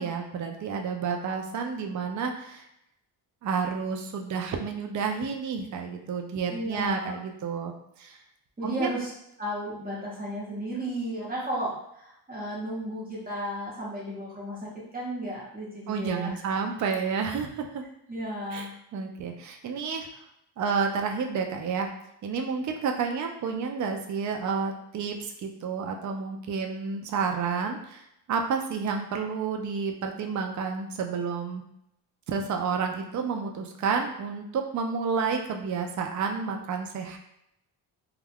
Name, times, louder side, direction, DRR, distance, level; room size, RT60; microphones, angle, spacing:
voice 1, 0.0-2.6 3.4-7.7 8.0-8.2 8.6-8.9 15.9-17.8 18.5-20.1 20.6-21.9 22.2-31.6 32.3-37.2, right 5 dB, 40° right, 3 dB, 0.4 m, -30 dB
voice 2, 6.5-7.2 8.6-9.1 9.4-16.4 18.1-18.7, right 1 dB, 20° right, -6 dB, 1.1 m, -34 dB
2.3 x 2.2 x 3.4 m, 0.78 s
cardioid pair, 100°, 46 cm